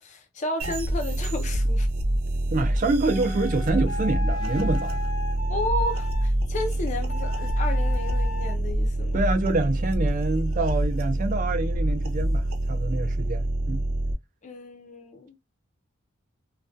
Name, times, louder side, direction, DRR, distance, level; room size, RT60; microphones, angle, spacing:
voice 1, 0.0-1.9 5.5-9.2 14.4-15.4, left 1 dB, 35° left, 0.5 m, -32 dB
sound 1, 0.6-14.1, right 1 dB, 85° right, 0.6 m, -26 dB
voice 2, 2.5-5.0 9.1-13.8, right 3 dB, 40° right, 0.4 m, -26 dB
sound 2, 3.0-6.3 7.1-8.6, left 3 dB, 90° left, 0.9 m, -36 dB
2.3 x 2.2 x 2.5 m
head